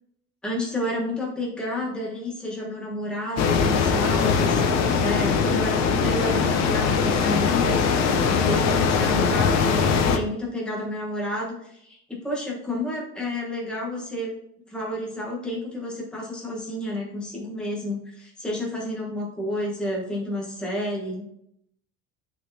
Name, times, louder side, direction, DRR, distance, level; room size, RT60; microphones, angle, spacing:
voice 1, 0.4-14.3 14.7-21.3, left 1 dB, 5° left, -4 dB, 1.2 m, -30 dB
sound 1, 3.4-10.2, left 5 dB, 55° left, 0.7 m, -21 dB
9.4 x 3.9 x 2.7 m, 0.76 s
cardioid pair, 155°, 32 cm